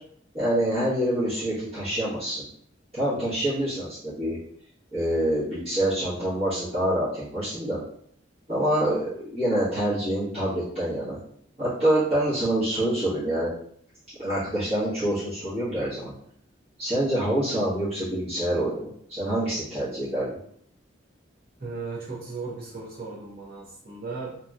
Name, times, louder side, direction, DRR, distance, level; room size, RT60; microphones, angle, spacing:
voice 1, 0.3-2.4 2.9-4.4 4.9-7.8 8.5-11.2 11.6-13.5 14.2-16.1 16.8-20.3, right 1 dB, 35° right, -15 dB, 1.2 m, -26 dB
voice 2, 21.6-24.3, right 4 dB, 50° right, -4 dB, 0.8 m, -36 dB
3.0 x 2.8 x 2.4 m, 0.65 s
head